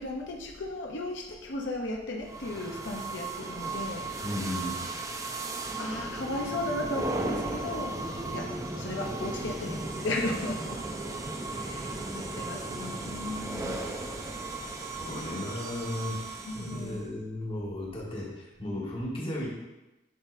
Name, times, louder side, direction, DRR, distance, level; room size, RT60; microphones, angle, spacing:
voice 1, 0.0-4.1 5.8-8.0 8.3-10.8 11.6-13.8 15.0-15.5 16.4-17.1, left 2 dB, 90° left, 0 dB, 0.8 m, -35 dB
sound 1, 2.3-17.0, right 2 dB, 15° right, 0.5 m, -36 dB
voice 2, 4.2-4.7 14.9-19.5, left 1 dB, 30° left, -4 dB, 1.5 m, -35 dB
10.0 x 4.0 x 2.6 m, 1.0 s
head